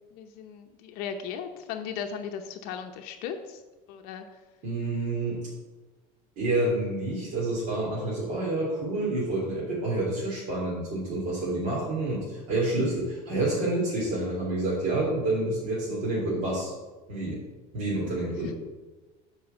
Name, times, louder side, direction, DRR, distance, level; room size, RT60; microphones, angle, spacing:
voice 1, 0.1-3.6 3.9-4.2 18.4-18.5, left 7 dB, 60° left, 5 dB, 0.8 m, -37 dB
voice 2, 4.6-5.5 6.4-16.7 17.1-17.4 17.7-18.5, right 2 dB, 50° right, -7 dB, 3.3 m, -28 dB
7.8 x 4.8 x 7.1 m, 1.2 s
cardioid pair, 150°, 18 cm